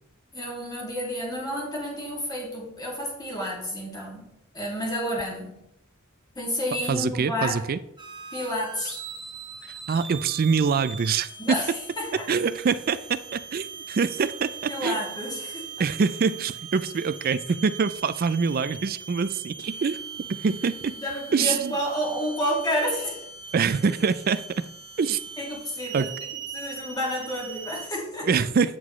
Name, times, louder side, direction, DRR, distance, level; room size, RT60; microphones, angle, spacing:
voice 1, 0.3-5.6 6.4-7.6 8.3-9.0 11.4-12.1 14.7-15.8 21.0-23.3 25.4-26.1 26.5-28.3, equal, 20° left, -3 dB, 2.4 m, -30 dB
voice 2, 6.9-7.8 9.6-11.6 12.3-15.0 15.8-20.0 20.3-20.9 21.3-21.8 23.5-24.6 25.0-25.2 25.9-26.1 28.2-28.8, right 5 dB, 45° right, 14 dB, 0.4 m, -25 dB
sound 1, 8.0-27.9, right 6 dB, 20° right, 1.0 m, -40 dB
9.0 x 6.0 x 3.2 m, 0.81 s
head